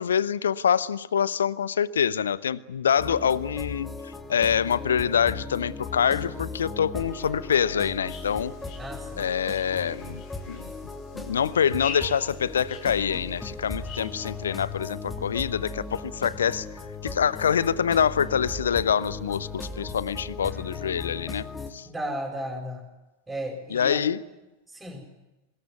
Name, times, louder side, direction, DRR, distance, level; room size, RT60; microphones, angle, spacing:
voice 1, 0.0-3.9 4.3-8.5 9.2-10.2 10.5-10.7 11.1-16.7 17.0-21.5 21.7-21.9 23.7-24.2, left 8 dB, 65° left, 1.0 m, -25 dB
sound 1, 3.0-21.7, left 3 dB, 10° left, 3.2 m, -37 dB
sound 2, 8.1-16.3, left 6 dB, 45° left, 5.8 m, -46 dB
voice 2, 8.8-9.2 21.8-22.8 23.3-24.1 24.7-25.0, right 1 dB, 10° right, 7.1 m, -34 dB
25.0 x 21.0 x 9.4 m
figure-of-eight pair, 90°, 0 cm